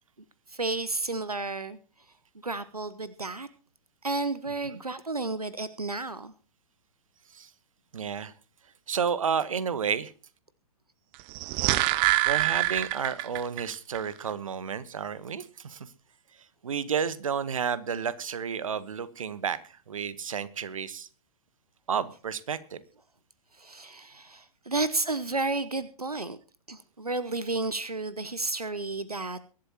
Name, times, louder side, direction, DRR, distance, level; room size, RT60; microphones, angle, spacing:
voice 1, 0.5-1.8 2.4-3.5 4.0-6.3 11.8-12.3 23.6-26.4 26.7-29.5, right 3 dB, 85° right, 15 dB, 1.0 m, -32 dB
voice 2, 7.9-8.3 8.9-10.1 12.3-15.9 16.6-21.1 21.9-22.8, right 7 dB, 60° right, 17 dB, 1.2 m, -31 dB
sound 1, 11.2-13.7 13.9-14.0, right 18 dB, 25° right, 0.6 m, -25 dB
23.0 x 11.5 x 2.9 m, 0.39 s
figure-of-eight pair, 115°, 19 cm